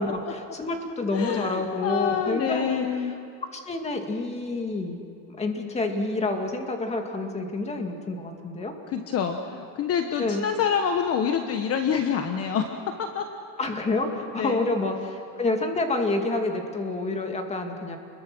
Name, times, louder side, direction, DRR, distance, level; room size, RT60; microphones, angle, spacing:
voice 1, 0.0-3.1 3.5-5.0 5.3-8.7 10.2-10.5 13.6-18.0, left 2 dB, 20° left, 4 dB, 2.3 m, -28 dB
voice 2, 1.1-3.1 8.9-13.3 14.4-14.7, left 7 dB, 45° left, 5 dB, 1.3 m, -27 dB
29.5 x 22.0 x 6.2 m, 2.4 s
cardioid pair, 150°, 34 cm